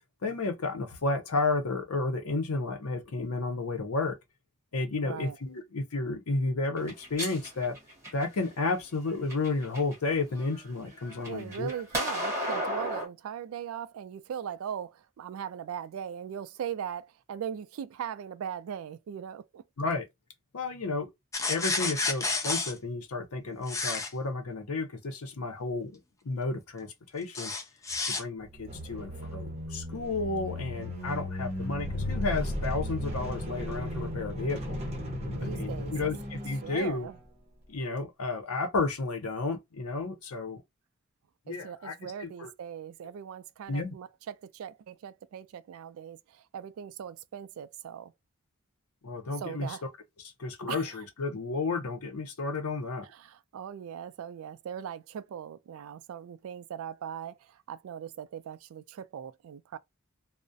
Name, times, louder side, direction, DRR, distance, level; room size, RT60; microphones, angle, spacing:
voice 1, 0.2-4.1 4.7-7.8 8.1-11.7 19.8-20.1 20.5-21.1 21.5-26.0 26.2-27.5 28.0-34.8 35.4-37.1 37.7-40.6 41.5-42.5 43.7-43.9 49.0-49.8 50.4-53.1, left 3 dB, 85° left, 0.7 m, -32 dB
voice 2, 5.0-5.4 11.3-19.6 35.4-36.1 36.6-37.2 41.5-48.1 49.4-49.8 50.7-50.9 53.0-59.8, right 8 dB, 75° right, 0.3 m, -39 dB
sound 1, 6.8-8.5 9.1-9.9 10.3-13.1, equal, 15° right, 1.1 m, -34 dB
sound 2, 21.3-22.7 23.7-24.1 27.4-28.2, left 3 dB, 15° left, 0.3 m, -30 dB
sound 3, 28.4-37.2, left 1 dB, 30° right, 0.8 m, -35 dB
2.4 x 2.1 x 2.5 m
head